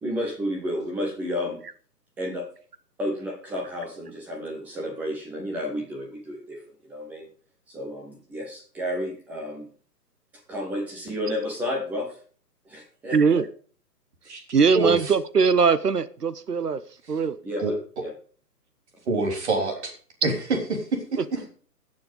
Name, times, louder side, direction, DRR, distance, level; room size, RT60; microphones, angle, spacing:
voice 1, 0.0-1.6 2.2-2.5 3.0-7.3 7.7-9.7 10.5-12.2 12.6-13.4 17.4-17.7 18.0-18.1, left 1 dB, 5° right, 0 dB, 0.8 m, -31 dB
voice 2, 13.1-13.4 14.5-16.8 17.1-17.4, right 5 dB, 70° right, 14 dB, 1.0 m, -21 dB
voice 3, 14.7-15.1 17.6-17.7 19.1-19.9 20.2-21.4, right 2 dB, 45° right, 2 dB, 3.6 m, -26 dB
16.5 x 6.8 x 5.2 m, 0.43 s
figure-of-eight pair, 135°, 48 cm